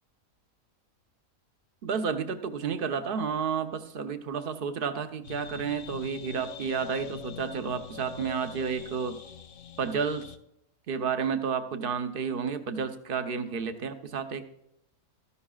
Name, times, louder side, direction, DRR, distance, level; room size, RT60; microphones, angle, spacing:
voice 1, 1.8-9.2 9.8-10.3 10.9-14.4, right 6 dB, 45° right, 9 dB, 0.9 m, -31 dB
sound 1, 5.2-10.4, left 7 dB, 65° left, 1.0 m, -44 dB
13.5 x 11.0 x 2.4 m, 0.78 s
omnidirectional pair, 1.5 m